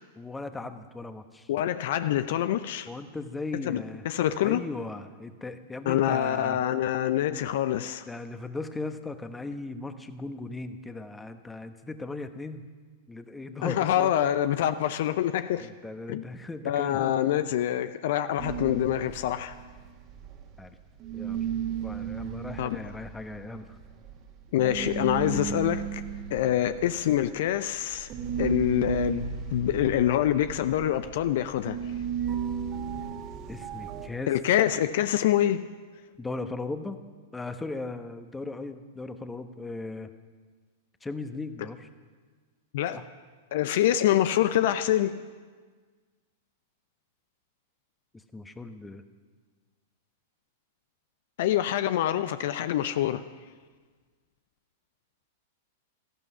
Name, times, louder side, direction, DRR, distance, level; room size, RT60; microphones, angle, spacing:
voice 1, 0.2-1.5 2.9-4.1 4.4-6.6 8.1-12.7 13.1-14.2 15.6-17.1 20.6-20.8 21.1-21.4 21.8-23.8 33.5-34.3 36.2-37.0 37.3-40.1 41.0-41.9 42.9-43.0 48.3-49.0, left 3 dB, 10° left, 9 dB, 1.1 m, -37 dB
voice 2, 1.5-2.9 3.7-4.6 5.9-8.1 13.6-15.7 16.1-16.2 16.6-19.6 22.6-22.8 24.5-26.0 26.3-28.1 28.4-31.8 34.3-35.7 42.7-43.0 43.5-45.1 51.4-53.2, left 12 dB, 60° left, 12 dB, 0.6 m, -26 dB
sound 1, 18.4-20.7 21.0-34.1, right 7 dB, 40° right, 2.0 m, -35 dB
17.5 x 14.5 x 5.6 m, 1.5 s
figure-of-eight pair, 100°, 0 cm